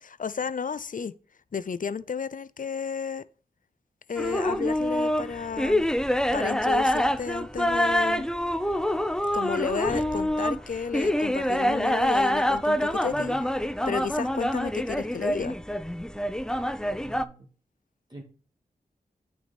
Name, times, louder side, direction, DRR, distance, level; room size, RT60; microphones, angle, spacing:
voice 1, 0.0-1.1 1.5-3.3 4.1-5.9 6.3-8.3 9.3-13.4 13.9-15.6, left 6 dB, 60° left, 0.6 m, -32 dB
sound 1, 4.2-17.2, equal, 5° left, 0.7 m, -26 dB
voice 2, 13.1-13.4 16.9-17.5 18.1-18.2, right 1 dB, 30° right, 2.4 m, -44 dB
8.7 x 6.1 x 4.2 m
cardioid pair, 45°, 16 cm